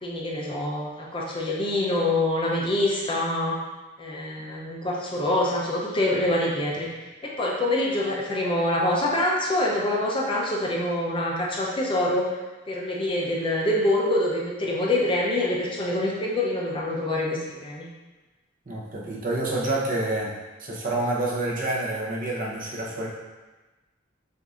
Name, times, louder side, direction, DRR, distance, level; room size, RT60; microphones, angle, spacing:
voice 1, 0.0-3.6 4.0-12.3 12.7-17.9, left 1 dB, 25° left, -3 dB, 0.5 m, -25 dB
voice 2, 18.7-20.3 20.6-23.1, right 2 dB, 45° right, -3 dB, 0.7 m, -28 dB
6.4 x 2.6 x 2.4 m, 1.2 s
head